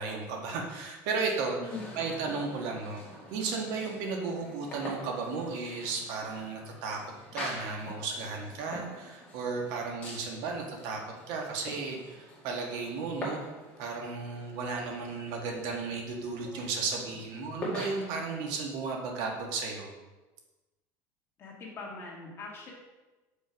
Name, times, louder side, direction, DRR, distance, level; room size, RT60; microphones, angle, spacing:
voice 1, 0.0-1.6 1.9-3.0 3.3-7.0 7.3-11.0 11.3-13.4 13.8-19.9, right 4 dB, 65° right, 1 dB, 1.5 m, -34 dB
voice 2, 1.6-1.9 21.4-22.7, left 4 dB, 35° left, -3 dB, 2.0 m, -41 dB
sound 1, 1.7-18.5, left 1 dB, 15° left, 2.1 m, -45 dB
6.8 x 5.4 x 4.7 m, 1.1 s
cardioid pair, 150°, 8 cm